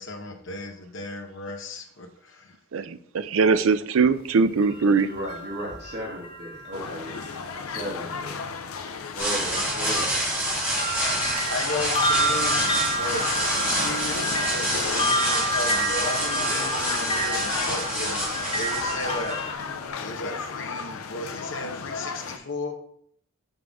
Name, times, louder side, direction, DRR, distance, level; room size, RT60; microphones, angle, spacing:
voice 1, 0.0-2.5 11.5-13.3 13.6-19.6 20.0-22.8, left 2 dB, 60° left, 4 dB, 0.9 m, -35 dB
voice 2, 2.7-5.1, right 4 dB, 75° right, 12 dB, 0.4 m, -21 dB
sound 1, 4.6-7.8 8.7-8.9 9.7-19.5, right 1 dB, 25° left, 0.5 m, -29 dB
voice 3, 4.8-7.1 7.7-8.3 9.1-10.2, equal, 50° right, -1 dB, 1.7 m, -35 dB
sound 2, 6.7-22.4, left 5 dB, 90° left, 0.5 m, -34 dB
sound 3, 9.2-19.8, right 1 dB, 10° right, 1.9 m, -28 dB
5.5 x 5.4 x 3.5 m, 0.65 s
head